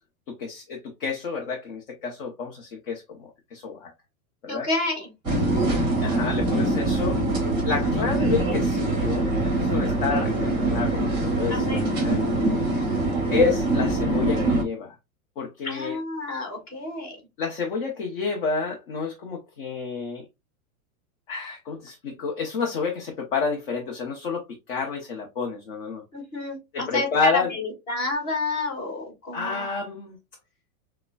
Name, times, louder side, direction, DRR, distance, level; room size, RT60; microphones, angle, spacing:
voice 1, 0.4-3.9 4.4-4.7 6.0-7.2 7.6-9.3 9.6-12.2 13.3-15.0 15.4-16.0 17.4-20.2 21.3-26.0 26.7-27.5 29.3-30.2, left 5 dB, 40° left, 0.8 m, -29 dB
voice 2, 4.5-5.7 11.5-11.9 15.6-17.2 26.1-29.7, left 2 dB, 25° left, 1.6 m, -30 dB
sound 1, 5.2-14.6, right 2 dB, 10° right, 1.3 m, -24 dB
6.4 x 2.2 x 2.2 m
supercardioid pair, 175°, 43 cm